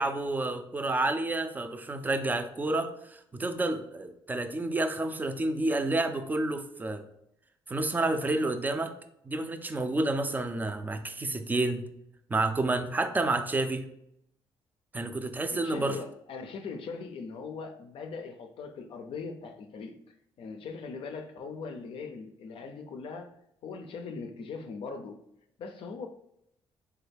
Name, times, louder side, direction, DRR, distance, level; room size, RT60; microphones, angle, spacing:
voice 1, 0.0-7.0 7.7-8.9 9.3-11.9 12.3-13.9 14.9-16.0, right 2 dB, 20° right, 8 dB, 0.4 m, -29 dB
voice 2, 15.5-19.9 20.4-23.3 23.6-25.2 25.6-26.1, left 4 dB, 65° left, 5 dB, 0.4 m, -40 dB
3.1 x 2.3 x 3.3 m, 0.75 s
cardioid pair, 85°, 10 cm